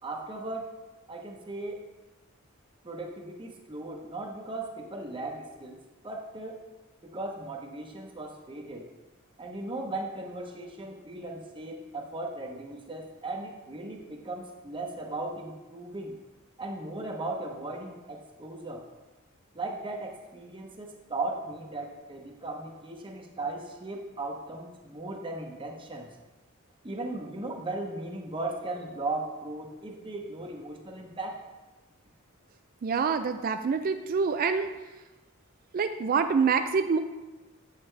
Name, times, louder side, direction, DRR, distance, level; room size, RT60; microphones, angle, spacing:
voice 1, 0.0-0.7 1.1-1.8 2.8-6.6 7.0-8.9 9.4-16.2 16.6-18.9 19.5-26.1 26.8-31.4, right 2 dB, 25° right, 1 dB, 0.9 m, -37 dB
voice 2, 32.8-34.7 35.7-37.0, right 5 dB, 40° right, 8 dB, 0.3 m, -26 dB
8.3 x 6.5 x 3.3 m, 1.1 s
head